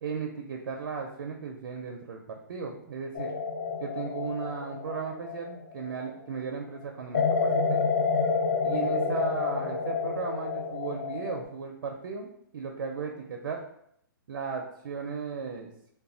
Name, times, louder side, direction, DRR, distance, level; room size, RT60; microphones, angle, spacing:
voice 1, 0.0-3.3 3.8-7.9 8.6-13.6 14.3-15.7, right 5 dB, 70° right, 2 dB, 0.4 m, -36 dB
sound 1, 3.1-6.2 7.1-11.4, left 5 dB, 45° left, 0.4 m, -29 dB
2.1 x 2.0 x 3.6 m, 0.73 s
hypercardioid pair, 155°, 12 cm